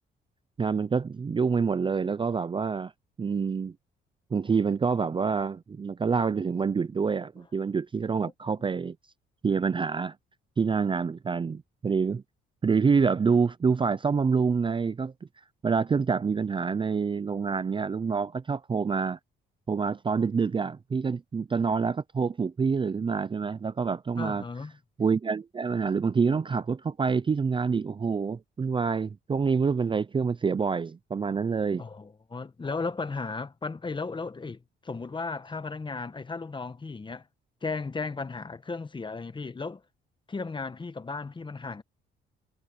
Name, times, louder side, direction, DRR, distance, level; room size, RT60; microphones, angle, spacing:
voice 1, 0.6-2.9 3.2-3.7 4.3-9.0 9.4-10.1 10.6-12.2 12.6-15.1 15.6-19.2 19.7-24.4 25.0-31.8, right 5 dB, 25° right, 0.5 m, -27 dB
voice 2, 24.2-24.7 31.8-37.2 37.6-39.8 40.3-41.8, left 4 dB, 25° left, 1.1 m, -35 dB
cardioid pair, 90°, 20 cm